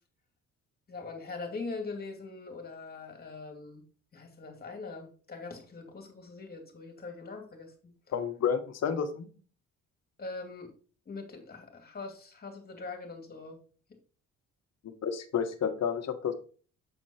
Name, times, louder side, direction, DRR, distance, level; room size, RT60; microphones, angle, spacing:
voice 1, 0.9-3.8 4.1-7.9 10.2-10.7 11.1-13.6, left 3 dB, 30° left, 3 dB, 2.4 m, -42 dB
voice 2, 8.1-9.3 14.8-16.3, left 7 dB, 60° left, 8 dB, 1.3 m, -30 dB
7.8 x 4.5 x 4.3 m, 0.39 s
cardioid pair, 90°, 30 cm